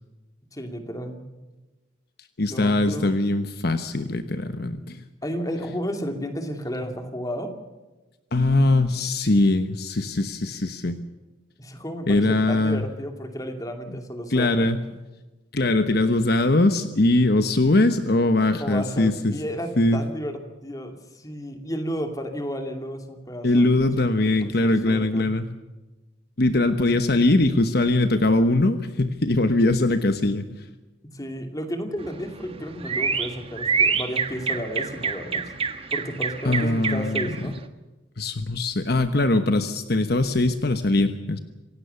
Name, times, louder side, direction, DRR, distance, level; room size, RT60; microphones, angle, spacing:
voice 1, 0.5-1.2 2.5-3.1 5.2-7.5 11.6-14.7 18.6-25.3 31.0-35.5 35.9-37.6, equal, 20° left, 5 dB, 2.6 m, -32 dB
voice 2, 2.4-5.0 8.3-11.0 12.1-12.9 14.3-14.8 15.5-19.4 19.8-20.0 23.4-25.4 26.4-30.7 36.4-37.5 38.2-41.4, left 2 dB, 55° left, 9 dB, 1.1 m, -21 dB
sound 1, 32.0-37.6, right 5 dB, 30° right, 1.5 m, -27 dB
27.0 x 17.0 x 6.9 m, 1.1 s
head